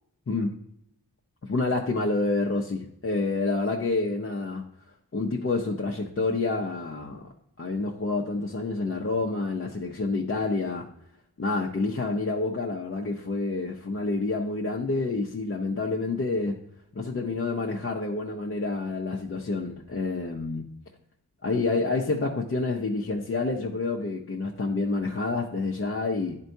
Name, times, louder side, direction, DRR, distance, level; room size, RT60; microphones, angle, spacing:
voice 1, 1.5-4.6 5.1-7.3 7.6-10.9 11.4-16.6 16.9-20.7 21.4-26.4, left 3 dB, 35° left, -1 dB, 0.7 m, -28 dB
10.5 x 4.5 x 2.7 m, 0.74 s
wide cardioid pair, 90°, 38 cm